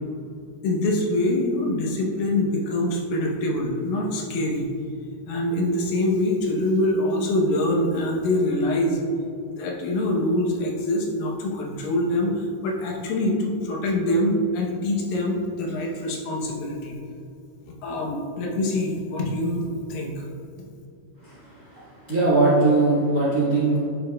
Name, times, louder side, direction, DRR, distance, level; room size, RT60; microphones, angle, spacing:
voice 1, 0.6-4.7 5.3-9.0 9.4-17.0 17.8-20.3, left 1 dB, 80° left, -1 dB, 2.6 m, -24 dB
voice 2, 21.2-23.8, right 3 dB, 50° right, -9 dB, 1.0 m, -21 dB
10.5 x 6.2 x 2.2 m, 2.5 s
omnidirectional pair, 4.1 m